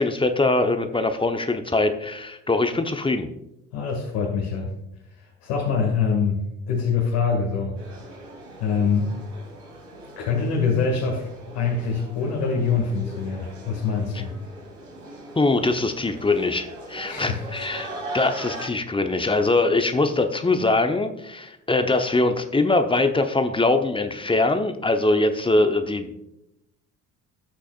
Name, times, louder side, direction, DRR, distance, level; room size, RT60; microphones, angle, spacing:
voice 1, 0.0-3.3 15.4-26.1, left 2 dB, 10° left, 7 dB, 0.9 m, -22 dB
voice 2, 3.7-4.7 5.1-6.4 6.7-7.7 8.6-9.1 10.2-11.3 11.5-14.3 17.1-17.4, left 5 dB, 65° left, -2 dB, 2.3 m, -24 dB
sound 1, 7.8-18.7, right 1 dB, 65° right, 3.0 m, -40 dB
19.0 x 6.3 x 2.5 m, 0.85 s
figure-of-eight pair, 60°, 46 cm